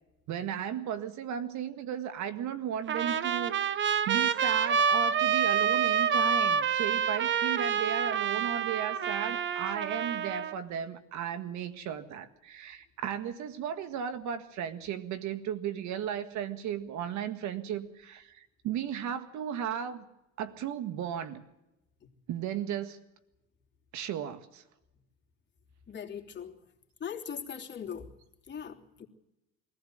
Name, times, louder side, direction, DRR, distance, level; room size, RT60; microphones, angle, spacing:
voice 1, 0.3-20.0 20.4-21.4 22.3-23.0 23.9-24.6, right 9 dB, 60° right, 11 dB, 1.8 m, -35 dB
Trumpet, 2.9-10.5, right 7 dB, 35° right, 1.0 m, -28 dB
voice 2, 25.9-26.6 27.0-28.1 28.5-29.1, left 7 dB, 35° left, 1 dB, 3.1 m, -40 dB
23.5 x 15.0 x 7.8 m, 0.91 s
supercardioid pair, 100°, 32 cm